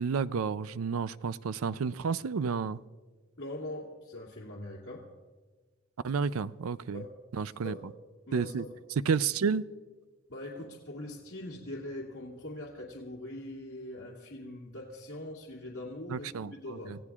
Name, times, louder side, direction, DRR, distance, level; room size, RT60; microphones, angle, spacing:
voice 1, 0.0-2.8 6.0-7.0 7.3-7.7 8.3-8.6 9.1-9.6 16.1-17.0, right 5 dB, 80° right, 16 dB, 0.4 m, -31 dB
voice 2, 3.4-5.1 6.9-7.1 7.6-7.8 8.3-8.7 10.3-17.0, left 1 dB, 60° left, -6 dB, 2.4 m, -42 dB
28.0 x 16.5 x 2.4 m, 1.4 s
head